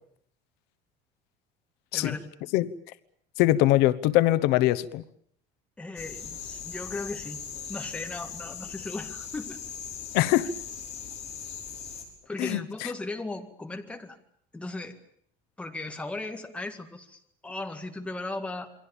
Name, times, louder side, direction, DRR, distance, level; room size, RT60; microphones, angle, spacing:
voice 1, 1.9-2.3 5.8-7.4 7.7-9.6 10.4-10.6 12.3-14.2 14.5-15.0 15.6-18.7, left 2 dB, 5° left, 4 dB, 2.0 m, -37 dB
voice 2, 3.4-5.0 10.1-10.5 12.4-12.9, left 15 dB, 80° left, 15 dB, 1.1 m, -22 dB
sound 1, 6.0-12.0, left 7 dB, 40° left, 6.1 m, -39 dB
28.5 x 23.5 x 7.2 m, 0.66 s
cardioid pair, 175°, 16 cm